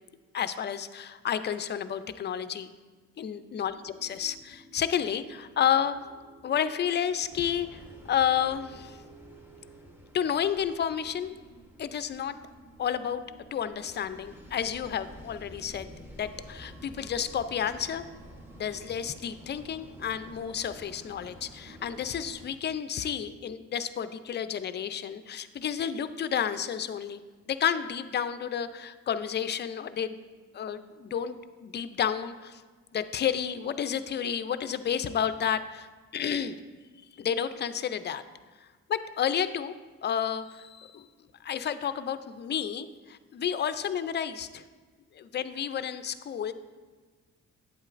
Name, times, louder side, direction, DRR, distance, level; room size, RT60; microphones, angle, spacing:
voice 1, 0.3-2.7 3.2-5.9 6.4-9.0 10.1-11.3 11.8-12.4 12.8-13.2 13.5-15.9 16.2-18.1 18.6-27.2 27.5-30.2 30.5-32.6 32.9-36.6 37.2-38.2 38.6-39.7 40.0-41.1 41.4-44.6 45.1-46.5, left 8 dB, 35° left, 12 dB, 0.4 m, -31 dB
sound 1, 3.7-22.8, right 3 dB, 45° right, 1.0 m, -55 dB
sound 2, 7.3-22.5, left 1 dB, 5° right, 1.1 m, -51 dB
9.0 x 8.0 x 2.5 m, 1.4 s
cardioid pair, 90°, 30 cm